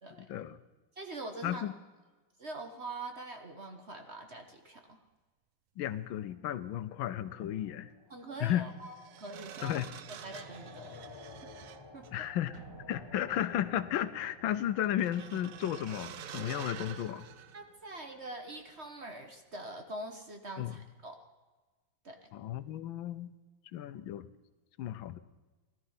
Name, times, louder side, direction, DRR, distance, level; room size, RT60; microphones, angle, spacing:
voice 1, 0.2-0.6 1.4-1.7 5.8-7.9 8.4-8.7 9.6-9.9 12.1-12.6 12.9-17.3 20.6-20.7 22.3-23.3 23.7-24.3 24.8-25.2, left 11 dB, 80° left, 13 dB, 1.4 m, -34 dB
voice 2, 1.0-1.6 2.4-5.0 8.1-9.8 10.1-11.0 11.4-11.5 11.9-12.3 17.5-21.2 22.0-22.2, right 2 dB, 40° right, 5 dB, 1.2 m, -44 dB
sound 1, 6.0-16.9, left 3 dB, 20° left, 0.8 m, -54 dB
sound 2, 7.2-7.3 8.5-18.2 18.5-18.8, right 9 dB, 70° right, 0.8 m, -49 dB
17.5 x 12.5 x 5.7 m, 1.2 s
omnidirectional pair, 2.2 m